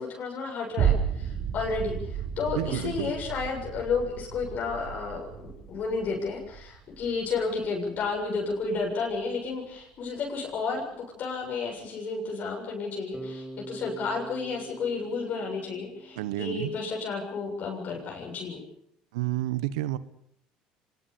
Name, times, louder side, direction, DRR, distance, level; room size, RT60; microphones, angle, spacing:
voice 1, 0.0-10.9 11.2-18.6, left 4 dB, 50° left, 0 dB, 7.2 m, -32 dB
sound 1, 0.8-9.3 9.8-9.9, right 8 dB, 60° right, 4.7 m, -33 dB
voice 2, 2.5-3.1 16.2-16.8 19.1-20.0, right 15 dB, 80° right, 16 dB, 1.2 m, -30 dB
Bass guitar, 13.1-17.2, right 1 dB, 5° right, 4.8 m, -44 dB
25.0 x 20.0 x 7.0 m, 0.74 s
hypercardioid pair, 75°, 4 cm